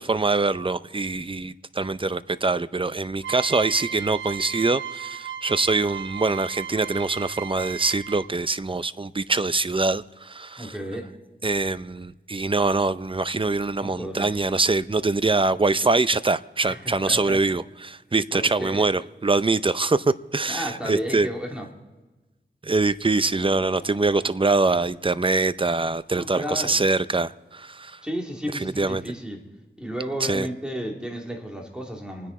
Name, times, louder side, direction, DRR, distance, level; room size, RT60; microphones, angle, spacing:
voice 1, 0.0-10.7 11.4-21.3 22.6-28.0 28.5-29.0 30.2-30.5, right 3 dB, 25° right, 15 dB, 0.6 m, -24 dB
sound 1, 3.2-8.5, right 8 dB, 70° right, 0.6 m, -36 dB
voice 2, 10.6-11.1 13.8-14.3 16.7-17.4 18.3-18.9 20.5-21.7 26.1-26.8 28.0-29.4 29.8-32.3, equal, 5° right, 0 dB, 3.1 m, -33 dB
sound 2, 23.3-26.4 26.9-27.0 28.0-28.1, left 2 dB, 60° left, 6.1 m, -50 dB
27.0 x 10.0 x 4.2 m, 1.2 s
wide cardioid pair, 65°, 20 cm